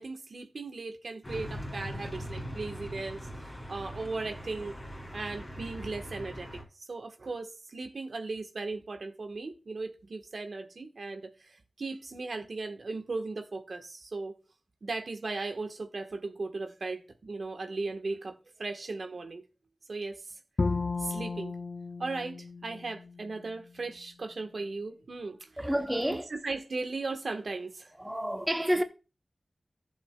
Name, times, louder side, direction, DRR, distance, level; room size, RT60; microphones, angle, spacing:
voice 1, 0.0-4.7 5.1-14.3 14.8-19.4 19.9-20.4 21.0-21.5 22.0-25.5 26.3-27.9, right 3 dB, 75° right, 1.3 m, -37 dB
sound 1, 1.2-6.6, equal, 25° left, 3.0 m, -41 dB
Bowed string instrument, 20.6-23.7, left 3 dB, 60° left, 0.7 m, -34 dB
voice 2, 25.6-26.3 28.0-28.8, equal, 10° right, 0.8 m, -29 dB
14.5 x 7.1 x 2.3 m
wide cardioid pair, 70°, 0 cm